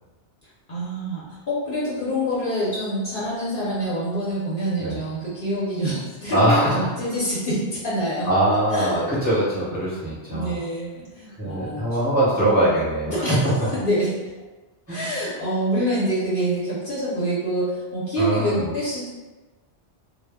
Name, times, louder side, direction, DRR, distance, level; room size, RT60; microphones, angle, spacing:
voice 1, 0.7-8.3 8.7-9.0 10.3-11.8 13.1-13.4 13.8-14.1 14.9-19.1, right 1 dB, 55° left, -8 dB, 0.8 m, -26 dB
voice 2, 6.3-6.8 8.2-10.6 11.4-13.1 14.9-15.1 18.2-18.6, right 1 dB, 10° right, -9 dB, 0.8 m, -22 dB
2.1 x 2.0 x 3.4 m, 1.2 s
omnidirectional pair, 1.2 m